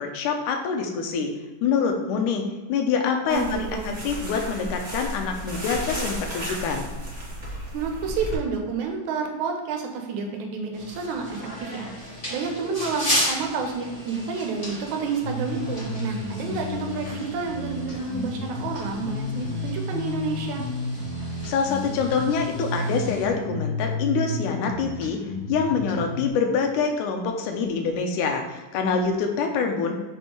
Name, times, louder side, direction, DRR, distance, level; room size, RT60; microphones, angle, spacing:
voice 1, 0.0-1.3 1.6-2.4 2.7-6.9 21.5-25.2 25.5-29.9, left 5 dB, 90° left, 4 dB, 2.3 m, -25 dB
sound 1, 3.3-8.3, equal, 30° right, 0.8 m, -34 dB
voice 2, 3.3-4.0 7.7-11.9 12.3-20.6, right 4 dB, 75° right, 3 dB, 2.1 m, -30 dB
sound 2, 10.7-23.2, equal, 15° left, 1.4 m, -35 dB
sound 3, 15.2-26.3, left 2 dB, 45° left, 1.4 m, -32 dB
6.6 x 5.3 x 3.0 m, 1.2 s
omnidirectional pair, 3.6 m